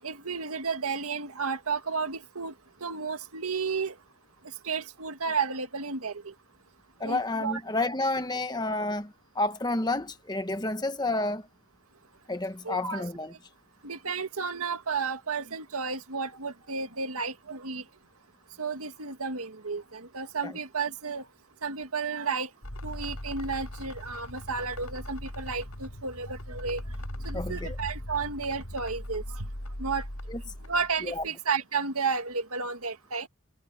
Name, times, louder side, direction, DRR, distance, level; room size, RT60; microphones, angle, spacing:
voice 1, 0.0-2.5 2.8-3.9 4.6-6.3 7.0-7.6 12.7-13.0 13.8-17.8 18.6-21.2 21.6-22.5 22.8-26.8 27.2-29.5 29.8-30.0 30.7-33.3, right 5 dB, 85° right, 1.9 m, -32 dB
voice 2, 7.0-11.5 12.3-13.3 20.4-20.5 27.3-27.8 30.3-30.4 31.1-31.2, left 2 dB, 20° left, 1.3 m, -30 dB
sound 1, 22.6-31.3, left 1 dB, 90° left, 5.7 m, -39 dB
head